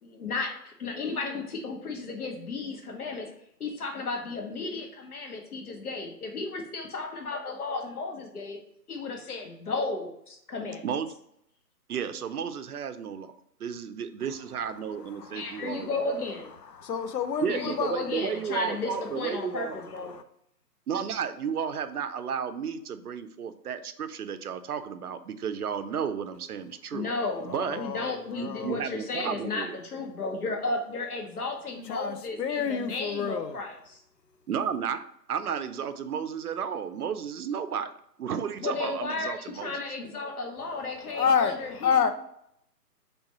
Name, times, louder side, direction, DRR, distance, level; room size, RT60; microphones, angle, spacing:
voice 1, 0.0-3.3 3.6-8.6 8.9-10.8 15.3-16.5 17.5-20.1 26.9-34.0 38.6-42.1, left 3 dB, 65° left, 1.1 m, -34 dB
voice 2, 11.9-16.0 17.4-19.8 20.9-27.1 27.4-27.8 28.3-29.8 34.5-37.9 38.2-39.8, right 7 dB, 65° right, 0.5 m, -33 dB
voice 3, 15.2-15.6 16.7-17.9 20.1-20.2 27.4-28.8 31.9-33.6 41.1-42.1, left 6 dB, 80° left, 0.7 m, -29 dB
3.4 x 3.0 x 4.0 m
figure-of-eight pair, 145°, 49 cm